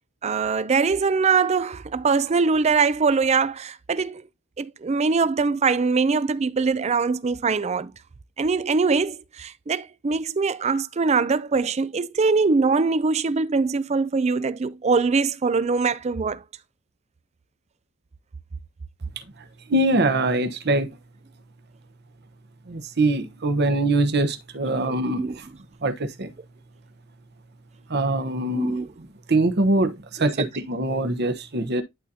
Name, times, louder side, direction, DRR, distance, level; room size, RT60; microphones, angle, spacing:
voice 1, 0.2-4.2 4.6-7.9 8.4-16.4 24.8-25.4 28.5-28.9 30.4-30.5, right 4 dB, 30° right, 0.4 m, -22 dB
voice 2, 19.7-20.9 22.7-25.5 25.8-26.3 27.9-28.8 29.3-31.8, right 2 dB, 55° right, 1.0 m, -23 dB
11.5 x 4.1 x 2.7 m
head